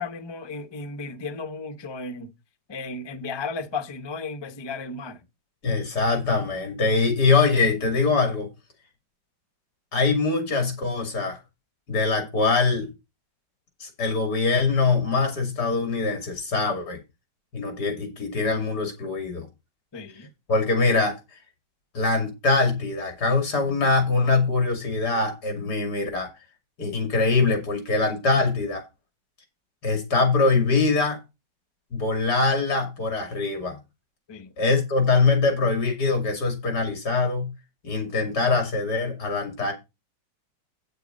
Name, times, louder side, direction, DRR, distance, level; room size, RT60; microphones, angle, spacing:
voice 1, 0.0-2.3 2.7-5.2 19.9-20.3 34.3-34.5, left 4 dB, 40° left, 0.3 m, -34 dB
voice 2, 5.6-8.5 9.9-11.4 11.9-12.9 13.8-17.0 17.5-19.5 20.5-21.2 21.9-26.3 26.8-28.8 29.8-31.2 31.9-33.8 34.6-37.5 37.8-39.7, left 3 dB, 65° left, 3.1 m, -23 dB
8.7 x 6.7 x 5.1 m
omnidirectional pair, 1.9 m